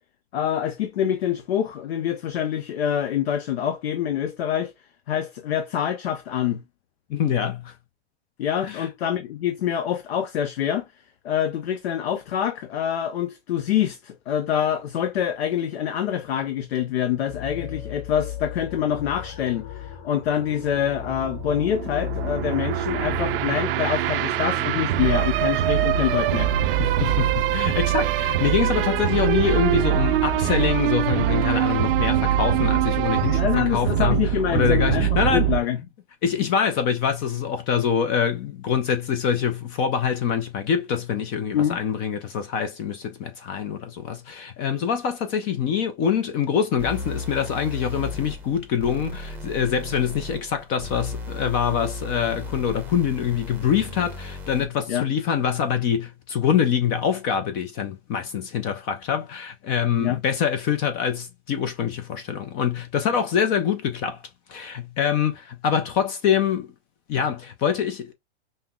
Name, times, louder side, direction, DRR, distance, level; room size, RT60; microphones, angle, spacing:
voice 1, 0.3-4.7 5.1-6.6 8.4-10.9 11.2-26.5 33.3-35.8 41.5-41.8 54.9-55.1 60.0-60.2, left 10 dB, 70° left, 0.7 m, -25 dB
voice 2, 7.1-7.7 8.6-8.9 26.8-35.5 36.2-64.2 64.5-66.7 67.1-68.1, left 8 dB, 30° left, 0.4 m, -25 dB
sound 1, 17.3-33.3, left 11 dB, 50° left, 1.4 m, -36 dB
sound 2, 20.4-35.6, right 14 dB, 60° right, 0.4 m, -23 dB
sound 3, 46.8-54.8, left 2 dB, 5° right, 0.7 m, -35 dB
5.5 x 2.0 x 2.3 m
hypercardioid pair, 130°, 33 cm